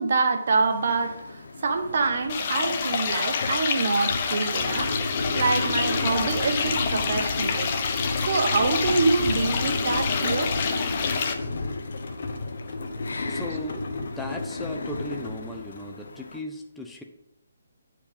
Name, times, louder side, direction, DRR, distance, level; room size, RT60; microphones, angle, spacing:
voice 1, 0.0-7.7 8.2-10.6, right 4 dB, 55° right, 6 dB, 1.1 m, -26 dB
sound 1, 0.6-16.4, left 3 dB, 80° left, 0.8 m, -41 dB
sound 2, 0.7-0.8 1.1-15.9, left 3 dB, 55° left, 1.1 m, -32 dB
sound 3, 2.3-11.3, left 6 dB, 35° left, 0.8 m, -28 dB
voice 2, 13.3-17.0, left 1 dB, ahead, 0 dB, 0.5 m, -37 dB
8.4 x 4.9 x 5.4 m, 0.86 s
hypercardioid pair, 165°, 0 cm